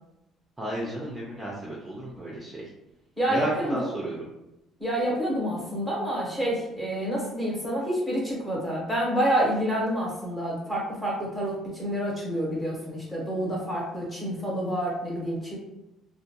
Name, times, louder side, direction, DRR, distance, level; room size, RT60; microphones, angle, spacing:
voice 1, 0.6-2.6 3.3-4.2, right 1 dB, 15° right, -5 dB, 0.5 m, -33 dB
voice 2, 3.2-3.9 4.8-15.6, equal, 5° left, -5 dB, 1.0 m, -28 dB
2.4 x 2.2 x 2.8 m, 0.90 s
cardioid pair, 130°, 0 cm